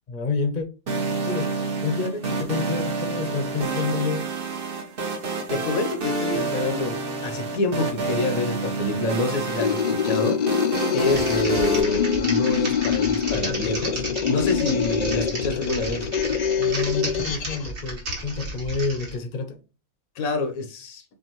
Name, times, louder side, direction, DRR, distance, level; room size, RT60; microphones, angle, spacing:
voice 1, 0.1-0.7 1.3-4.3 16.6-19.6, left 4 dB, 40° left, 0.7 m, -29 dB
sound 1, 0.9-11.8, right 3 dB, 45° right, 1.0 m, -28 dB
voice 2, 5.5-10.4 10.9-16.1 20.2-21.0, left 2 dB, 85° left, 1.3 m, -27 dB
sound 2, 9.5-17.7, left 7 dB, 65° left, 0.4 m, -25 dB
Typing, 11.0-19.1, right 1 dB, 80° right, 2.2 m, -33 dB
7.0 x 2.6 x 3.0 m
omnidirectional pair, 1.4 m